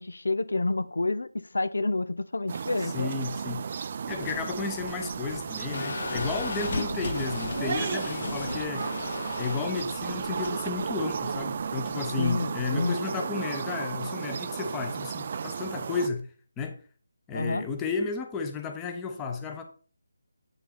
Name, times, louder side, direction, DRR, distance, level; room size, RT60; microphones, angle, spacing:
voice 1, 0.0-3.1 12.2-13.0 13.3-13.4 17.3-17.7, left 2 dB, 70° left, 0.6 m, -29 dB
sound 1, 2.5-16.1, right 6 dB, 40° right, 0.4 m, -34 dB
voice 2, 2.9-3.6 4.1-8.9 9.4-16.3 16.6-16.8 17.3-19.6, left 5 dB, 10° left, 1.0 m, -33 dB
sound 2, 4.1-12.0, left 3 dB, 50° left, 0.9 m, -36 dB
8.6 x 5.4 x 4.2 m
figure-of-eight pair, 160°, 0 cm